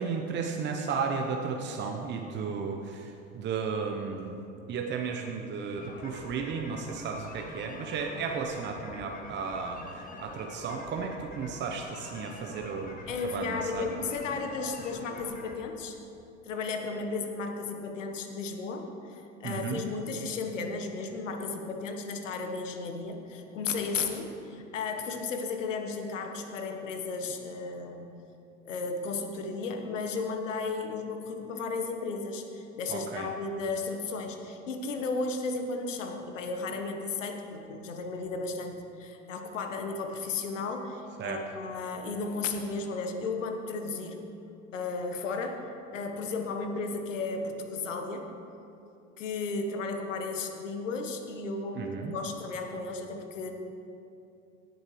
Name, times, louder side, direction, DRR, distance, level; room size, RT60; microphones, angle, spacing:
voice 1, 0.0-4.4 4.7-13.0 13.3-13.9 19.4-19.8 32.9-33.3 41.2-41.4 51.8-52.1, right 5 dB, 30° right, 2 dB, 0.9 m, -34 dB
sound 1, 5.8-15.6, left 3 dB, 20° left, 1.3 m, -46 dB
voice 2, 13.1-16.0 16.4-28.2 28.6-44.2 44.7-48.3 49.2-53.5, left 4 dB, 75° left, 5 dB, 1.3 m, -34 dB
17.5 x 9.2 x 3.2 m, 2.7 s
figure-of-eight pair, 75°, 38 cm